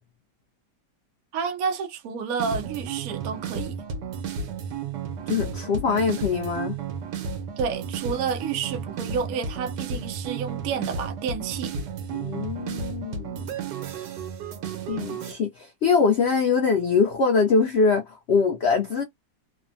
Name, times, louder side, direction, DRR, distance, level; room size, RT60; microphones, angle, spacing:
voice 1, 1.3-3.8 7.6-11.7, right 6 dB, 65° right, 1.0 m, -30 dB
sound 1, 2.4-15.3, right 6 dB, 80° right, 1.4 m, -33 dB
voice 2, 5.3-6.8 12.1-13.5 14.9-19.0, left 5 dB, 85° left, 0.5 m, -23 dB
3.4 x 2.1 x 2.5 m
omnidirectional pair, 1.9 m